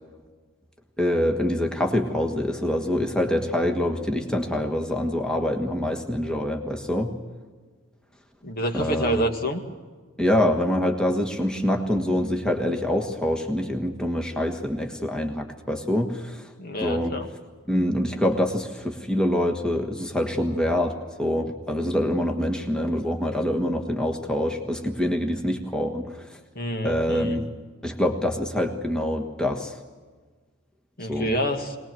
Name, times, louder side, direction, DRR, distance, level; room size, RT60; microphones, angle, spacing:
voice 1, 1.0-7.1 8.7-9.2 10.2-16.5 16.8-17.1 17.7-26.3 26.8-27.4 27.8-29.8 31.1-31.3, left 1 dB, 5° left, 2 dB, 1.4 m, -25 dB
voice 2, 8.4-9.6 16.6-17.3 26.6-27.4 31.0-31.8, equal, 45° left, 5 dB, 1.9 m, -27 dB
22.5 x 19.5 x 7.7 m, 1.4 s
head